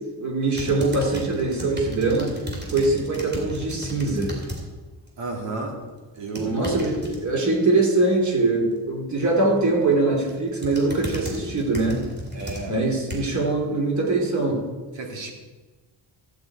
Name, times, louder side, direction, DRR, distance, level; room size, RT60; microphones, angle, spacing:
voice 1, 0.2-2.4 2.7-4.3 6.4-12.0 12.7-14.6, right 2 dB, 40° right, 0 dB, 2.5 m, -22 dB
sound 1, 0.5-4.6 5.0-5.4 6.2-7.2 9.6-9.9 10.3-13.5 14.0-14.1, equal, 20° right, 2.8 m, -35 dB
voice 2, 5.2-5.8 6.1-6.8 12.3-12.8 14.9-15.3, right 3 dB, 80° right, 1 dB, 2.5 m, -31 dB
14.0 x 8.2 x 4.6 m, 1.3 s
cardioid pair, 155°, 44 cm